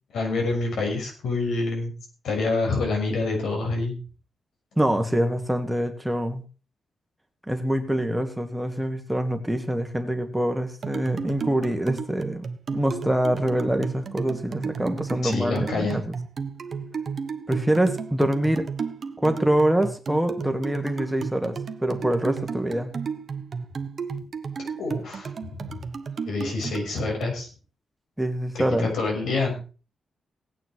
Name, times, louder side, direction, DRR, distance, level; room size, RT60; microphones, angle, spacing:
voice 1, 0.1-1.9 2.2-4.0 15.2-16.0 24.8-25.3 25.6-25.8 26.2-27.5 28.6-29.6, left 3 dB, 85° left, 1 dB, 6.3 m, -27 dB
voice 2, 4.8-6.4 7.5-12.4 12.7-16.0 17.5-18.7 19.2-22.9 28.2-28.9, right 1 dB, 5° right, 6 dB, 1.6 m, -25 dB
sound 1, 10.8-27.3, right 5 dB, 45° right, 1.1 m, -33 dB
17.5 x 9.2 x 4.6 m, 0.36 s
wide cardioid pair, 140°, 0 cm